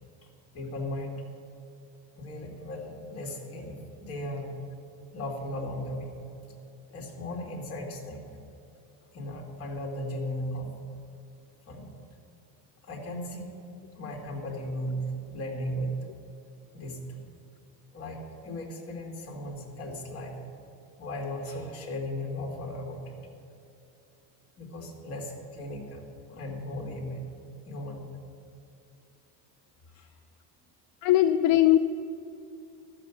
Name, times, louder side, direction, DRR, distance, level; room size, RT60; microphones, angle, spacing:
voice 1, 0.5-1.1 2.2-4.6 5.1-6.2 6.9-8.2 9.1-10.7 11.7-11.9 12.8-13.6 14.0-16.1 16.7-17.2 17.9-20.4 21.0-23.2 24.6-27.2 27.7-28.1 29.9-30.1, left 1 dB, 40° left, 0 dB, 2.0 m, -36 dB
voice 2, 31.0-31.8, left 13 dB, 65° left, 8 dB, 0.5 m, -20 dB
14.0 x 6.8 x 7.1 m, 2.7 s
cardioid pair, 180°, 36 cm